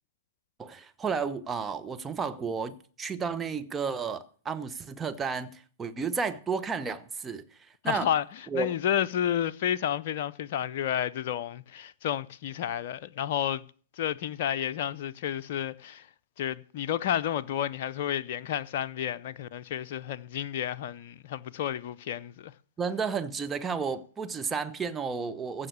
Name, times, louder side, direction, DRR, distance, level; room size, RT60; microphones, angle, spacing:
voice 1, 0.6-7.4 7.8-8.1 8.5-8.7 22.8-25.7, right 5 dB, 15° right, 1.0 m, -32 dB
voice 2, 7.8-8.2 8.5-13.6 14.0-16.1 16.4-22.5, left 10 dB, 55° left, 0.5 m, -31 dB
15.0 x 5.6 x 8.1 m
figure-of-eight pair, 105°, 0 cm